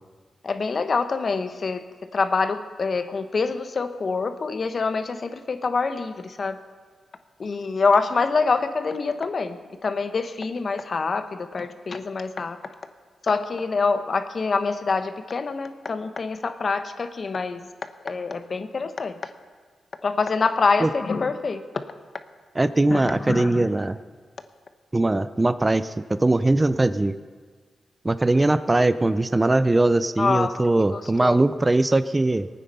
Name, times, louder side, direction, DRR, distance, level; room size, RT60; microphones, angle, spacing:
voice 1, 0.4-1.9 2.1-6.6 7.4-12.6 13.2-17.7 18.0-19.2 20.0-21.6 22.9-23.7 30.2-30.6 30.9-31.4, left 4 dB, 55° left, 9 dB, 1.0 m, -25 dB
voice 2, 22.6-24.0 24.9-27.1 28.0-32.5, right 2 dB, 25° right, 13 dB, 0.5 m, -21 dB
19.5 x 9.2 x 5.5 m, 1.5 s
cardioid pair, 55°, 0 cm